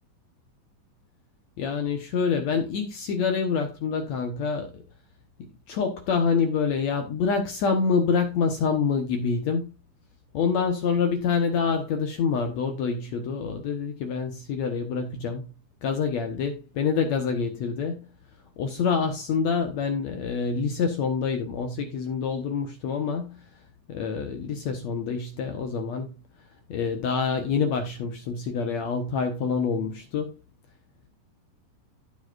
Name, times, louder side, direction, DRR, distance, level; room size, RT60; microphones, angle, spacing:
voice 1, 1.6-4.8 5.7-9.7 10.3-15.5 15.8-18.0 18.6-23.4 23.9-26.1 26.7-30.3, left 5 dB, 65° left, 2.2 m, -26 dB
16.5 x 5.7 x 2.5 m
omnidirectional pair, 3.9 m